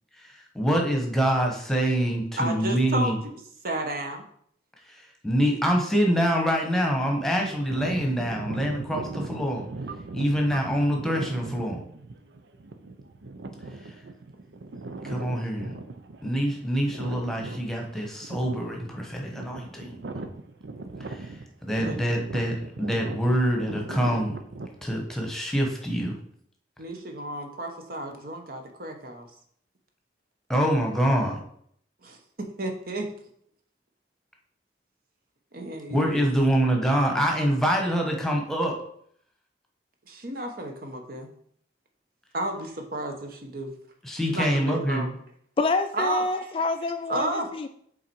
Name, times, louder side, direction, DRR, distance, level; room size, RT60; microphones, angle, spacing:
voice 1, 0.2-3.2 4.9-9.6 10.1-11.8 13.8-13.9 15.0-15.8 16.2-20.0 21.0-21.3 21.6-24.4 24.8-26.1 30.5-31.4 35.9-38.8 44.0-45.2, equal, 5° left, 1 dB, 1.1 m, -25 dB
voice 2, 2.4-3.3 3.6-4.2 21.8-22.3 26.8-29.3 32.0-33.1 35.5-36.3 40.1-41.3 42.3-43.7 44.3-45.1 45.9-46.5 47.1-47.5, right 1 dB, 55° right, 4 dB, 1.1 m, -32 dB
sound 1, 7.5-25.0, right 3 dB, 80° right, 0.7 m, -39 dB
voice 3, 45.6-47.7, left 3 dB, 30° left, 9 dB, 0.3 m, -27 dB
7.4 x 4.0 x 4.6 m, 0.66 s
head